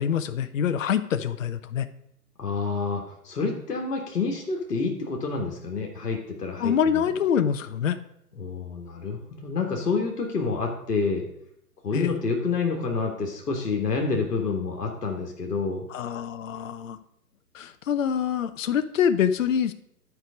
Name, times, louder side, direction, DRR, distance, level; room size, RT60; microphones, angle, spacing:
voice 1, 0.0-1.9 6.6-8.0 11.9-12.1 15.9-17.0 17.5-19.7, left 8 dB, 55° left, 12 dB, 0.6 m, -25 dB
voice 2, 2.4-7.0 8.3-11.2 11.8-15.8, left 4 dB, 70° left, 2 dB, 1.7 m, -28 dB
11.5 x 4.7 x 5.1 m, 0.75 s
figure-of-eight pair, 135°, 48 cm